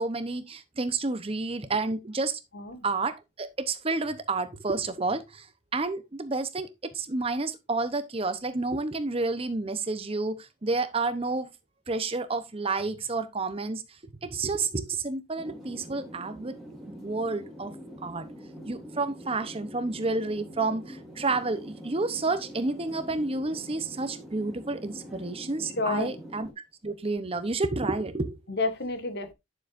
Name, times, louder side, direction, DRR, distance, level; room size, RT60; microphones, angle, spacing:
voice 1, 0.0-2.4 2.8-5.5 5.7-11.5 11.9-16.5 16.9-17.7 18.0-18.2 18.7-28.4, right 3 dB, 30° right, 0.9 m, -30 dB
voice 2, 2.5-2.9 25.8-26.2 28.5-29.3, left 3 dB, 60° left, 1.7 m, -30 dB
sound 1, 15.4-26.5, equal, ahead, 2.6 m, -44 dB
10.0 x 7.0 x 2.6 m
head